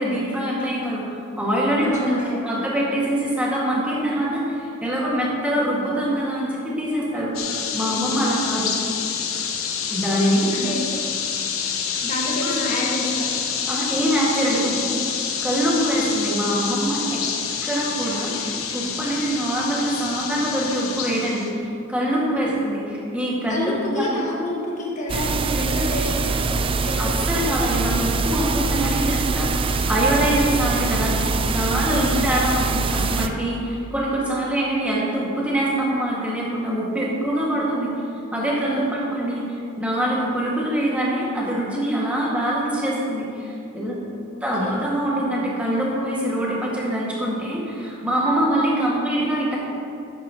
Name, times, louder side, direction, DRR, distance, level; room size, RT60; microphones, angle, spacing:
voice 1, 0.0-7.3 7.7-8.7 9.9-10.5 12.4-12.7 13.7-15.2 15.4-17.2 17.6-24.2 27.0-37.9 38.3-44.0 44.4-49.6, right 1 dB, 5° right, -6 dB, 2.1 m, -24 dB
voice 2, 1.8-2.7 7.1-7.5 7.9-8.2 10.5-10.9 12.0-13.4 22.5-22.6 23.5-27.2 31.8-32.3 44.3-44.9, left 1 dB, 35° left, -4 dB, 1.7 m, -29 dB
sound 1, 7.3-21.5, left 7 dB, 80° left, 0.9 m, -27 dB
sound 2, 25.1-33.3, right 4 dB, 25° right, 0.3 m, -23 dB
12.5 x 9.4 x 3.1 m, 2.6 s
head